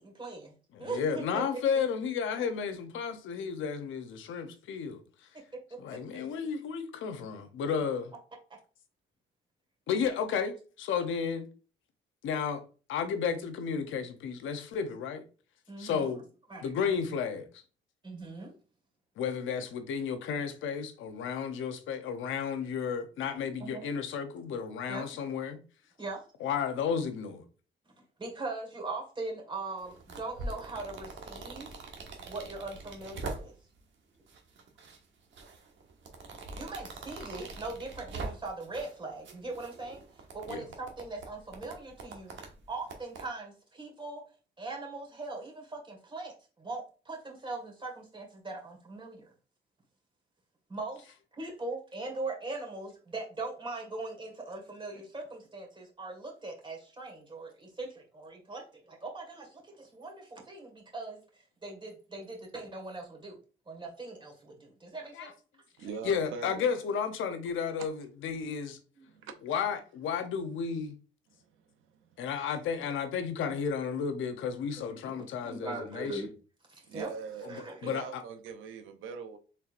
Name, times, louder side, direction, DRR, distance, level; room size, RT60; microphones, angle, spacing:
voice 1, 0.0-0.5 0.8-1.4 5.7-5.8 6.1-6.3 15.7-16.2 16.5-16.7 18.0-18.5 23.6-23.9 24.9-25.1 26.0-26.2 28.2-31.9 32.3-33.5 36.6-40.0 40.3-42.4 42.7-44.2 44.6-49.3 50.7-63.4 63.7-65.3 69.0-69.1 75.2-76.3 76.7-77.1 77.5-77.9, right 3 dB, 25° right, 1.8 m, -40 dB
voice 2, 0.7-5.0 5.8-8.1 9.9-11.5 12.2-12.6 12.9-15.2 15.8-16.3 16.6-17.5 19.2-25.6 26.4-27.5 40.5-40.6 65.1-65.3 66.0-68.8 69.4-71.0 72.2-76.2 77.4-78.2, left 6 dB, 80° left, 0.8 m, -33 dB
sound 1, 29.8-33.8 34.3-35.0 35.3-38.9 39.2-43.2, right 3 dB, 70° right, 1.2 m, -43 dB
voice 3, 65.8-66.6 67.8-67.9 69.1-69.3 76.9-79.4, right 6 dB, 85° right, 0.7 m, -41 dB
4.4 x 3.5 x 2.5 m
cardioid pair, 90°, 20 cm